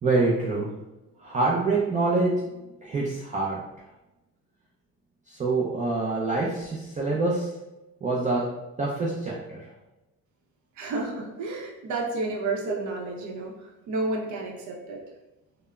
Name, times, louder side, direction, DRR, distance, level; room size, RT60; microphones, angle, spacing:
voice 1, 0.0-0.7 1.2-2.3 2.8-3.6 5.3-7.5 8.0-8.4 8.8-9.7, right 3 dB, 25° right, -5 dB, 0.4 m, -25 dB
voice 2, 10.7-15.0, right 2 dB, 60° right, 0 dB, 0.7 m, -31 dB
3.3 x 2.0 x 2.2 m, 1.0 s
cardioid pair, 100°, 34 cm